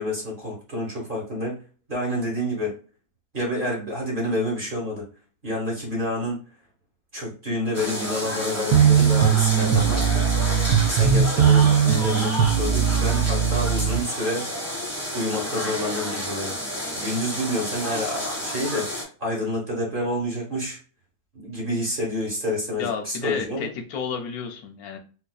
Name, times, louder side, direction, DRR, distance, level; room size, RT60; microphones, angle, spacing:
voice 1, 0.0-1.6 1.9-2.7 3.3-5.1 5.4-6.4 7.1-10.2 10.8-14.5 15.1-16.5 16.9-20.8 21.3-23.7, left 1 dB, 35° right, -2 dB, 1.3 m, -28 dB
sound 1, 7.7-19.0, equal, 10° right, 1.0 m, -30 dB
sound 2, 8.7-14.0, right 8 dB, 75° right, 1.1 m, -19 dB
voice 2, 22.8-25.0, left 5 dB, 75° left, 4 dB, 1.1 m, -31 dB
4.1 x 2.6 x 2.3 m, 0.38 s
omnidirectional pair, 1.6 m